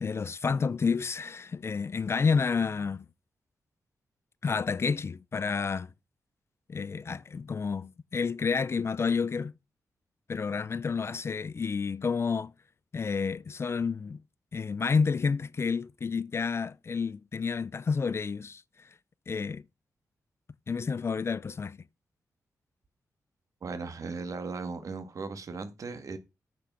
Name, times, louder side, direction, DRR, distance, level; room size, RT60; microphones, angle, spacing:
voice 1, 0.0-3.1 4.4-5.9 6.7-9.5 10.3-12.5 12.9-14.2 14.5-18.9 19.3-19.6 20.7-21.8, left 5 dB, 40° left, 0.4 m, -30 dB
voice 2, 23.6-26.2, right 4 dB, 60° right, 1.9 m, -37 dB
8.4 x 6.0 x 5.8 m
cardioid pair, 85°, 6 cm